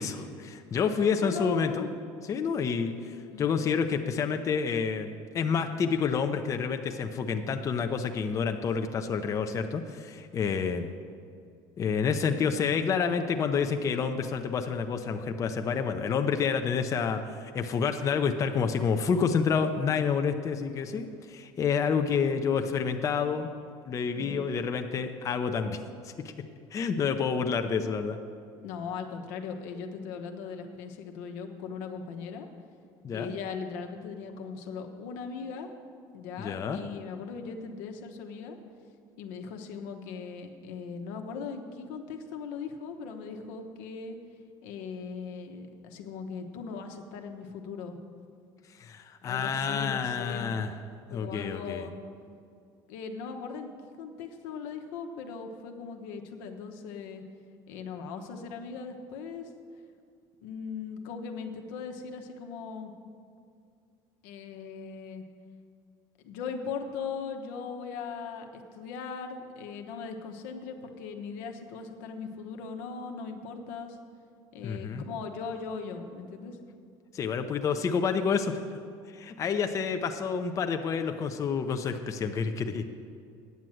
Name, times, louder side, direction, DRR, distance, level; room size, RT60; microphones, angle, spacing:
voice 1, 0.0-1.8 2.3-10.9 11.8-23.5 23.9-25.8 26.0-26.3 26.7-28.2 33.0-33.3 36.4-36.8 48.8-50.7 51.1-51.9 74.6-75.0 77.1-78.6 79.1-82.8, left 6 dB, 30° left, 6 dB, 0.6 m, -29 dB
voice 2, 1.2-1.9 3.3-3.5 24.1-24.4 28.6-32.5 33.1-35.7 36.1-38.6 39.2-44.2 44.6-48.0 49.2-50.5 51.1-52.0 52.9-53.7 54.0-57.2 57.7-59.5 60.4-62.9 64.2-65.2 66.2-74.0 74.5-76.6, left 5 dB, 85° left, 4 dB, 1.1 m, -39 dB
9.4 x 7.4 x 7.7 m, 2.3 s
cardioid pair, 130°, 10 cm